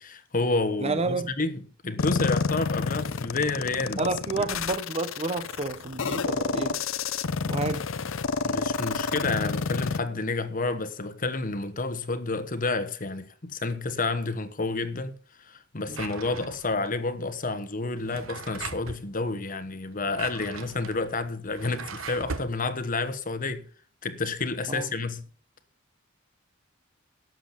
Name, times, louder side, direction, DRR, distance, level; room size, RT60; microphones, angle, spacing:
voice 1, 0.0-4.5 8.4-23.7 24.0-25.2, left 3 dB, 40° left, 1.2 m, -30 dB
voice 2, 0.8-1.3 4.0-6.8 7.4-7.9 15.9-16.0 24.7-24.9, right 3 dB, 30° right, 0.9 m, -30 dB
sound 1, 2.0-10.0, left 4 dB, 70° left, 0.7 m, -29 dB
Drawer open or close, 15.9-16.9 17.9-19.1 19.9-22.6, right 4 dB, 80° right, 1.1 m, -39 dB
12.0 x 7.5 x 5.8 m
head